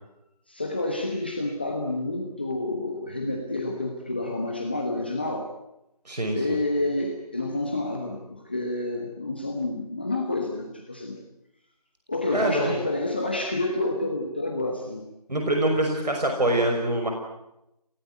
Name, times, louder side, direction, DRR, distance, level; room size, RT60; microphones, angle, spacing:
voice 1, 0.5-5.5 6.3-11.2 12.1-15.1, left 2 dB, 15° left, 1 dB, 1.2 m, -29 dB
voice 2, 6.0-6.6 12.3-12.8 15.3-17.1, right 1 dB, 85° right, 3 dB, 5.9 m, -25 dB
28.5 x 18.0 x 9.4 m, 0.88 s
figure-of-eight pair, 180°, 21 cm